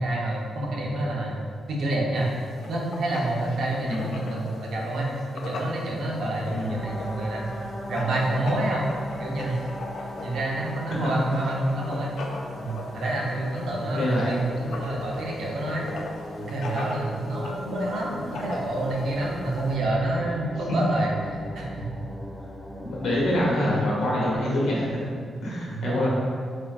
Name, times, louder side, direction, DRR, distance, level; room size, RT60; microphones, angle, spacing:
voice 1, 0.0-1.4 1.7-2.3 2.7-5.1 5.3-7.5 7.9-8.9 9.2-9.6 10.2-12.2 12.6-15.9 16.4-21.8 25.7-26.1, right 1 dB, 70° right, -2 dB, 0.6 m, -28 dB
Writing, 2.1-19.8, left 2 dB, 70° left, 0.3 m, -40 dB
voice 2, 3.8-4.1 6.5-6.7 10.9-11.0 13.9-14.4 22.8-25.0 25.4-26.1, left 1 dB, 90° left, -5 dB, 0.8 m, -25 dB
sound 1, 6.7-23.5, left 1 dB, 5° right, 0.4 m, -39 dB
4.3 x 2.4 x 2.3 m, 2.1 s
wide cardioid pair, 160°, 0 cm